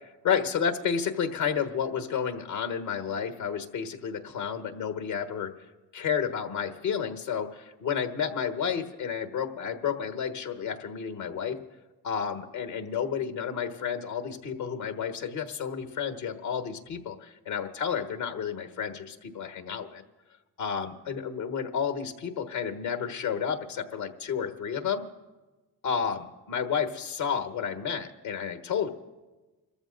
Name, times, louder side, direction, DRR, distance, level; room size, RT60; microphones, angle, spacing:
voice 1, 0.2-5.7 5.9-11.6 12.0-20.0 20.6-25.0 25.8-28.9, left 7 dB, 85° left, 6 dB, 1.5 m, -31 dB
29.5 x 14.5 x 2.6 m, 1.2 s
hypercardioid pair, 40°, 45 cm